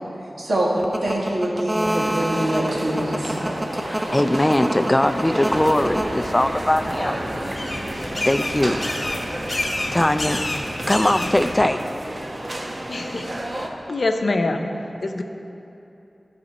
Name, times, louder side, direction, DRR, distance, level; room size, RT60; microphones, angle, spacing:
voice 1, 0.4-0.7 1.0-3.4, right 1 dB, 75° right, -4 dB, 1.7 m, -24 dB
sound 1, 0.8-6.8 7.5-8.1 11.6-11.7, right 1 dB, 20° right, 0.7 m, -26 dB
sound 2, 1.8-13.7, right 1 dB, 45° right, 0.9 m, -31 dB
voice 2, 4.1-7.2 8.2-8.8 9.9-10.4 10.9-11.8, left 1 dB, 20° left, 10 dB, 0.4 m, -20 dB
sound 3, 5.5-11.6, left 1 dB, 45° left, 1.2 m, -30 dB
voice 3, 12.9-13.3 13.9-14.6 15.0-15.2, left 2 dB, 70° left, 5 dB, 0.6 m, -24 dB
11.5 x 6.0 x 4.1 m, 2.8 s
cardioid pair, 45°, 0 cm